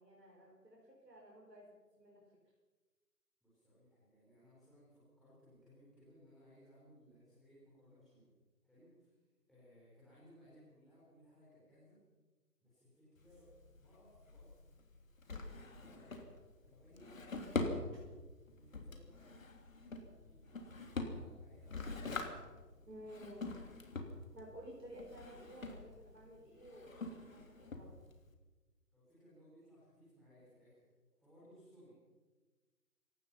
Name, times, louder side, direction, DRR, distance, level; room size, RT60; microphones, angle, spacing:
voice 1, 0.0-2.2 17.9-18.0 22.9-23.5 24.3-27.9, equal, 85° right, -2 dB, 5.3 m, -54 dB
voice 2, 3.4-8.3 8.6-9.2 9.5-12.0 12.6-14.5 15.2-16.3 16.6-18.1 18.5-19.4 19.9-22.3 28.9-30.9 31.2-32.0, equal, ahead, -11 dB, 4.6 m, -63 dB
Drawer open or close, 13.2-28.3, left 3 dB, 55° left, 3.2 m, -45 dB
28.0 x 17.5 x 5.7 m, 1.3 s
figure-of-eight pair, 150°, 48 cm